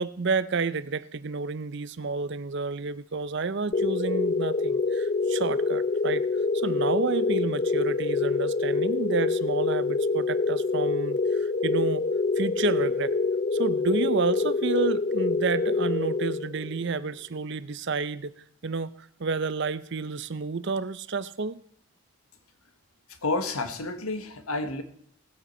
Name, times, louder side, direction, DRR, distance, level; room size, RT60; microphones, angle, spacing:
voice 1, 0.0-6.3 6.5-12.0 12.4-13.1 13.5-18.3 18.6-18.9 19.2-21.6, right 4 dB, 55° right, 16 dB, 0.6 m, -30 dB
sound 1, 3.7-16.9, left 3 dB, 35° left, 0.4 m, -26 dB
voice 2, 23.2-24.8, left 2 dB, 80° left, 9 dB, 1.4 m, -30 dB
18.5 x 8.3 x 4.3 m, 0.68 s
head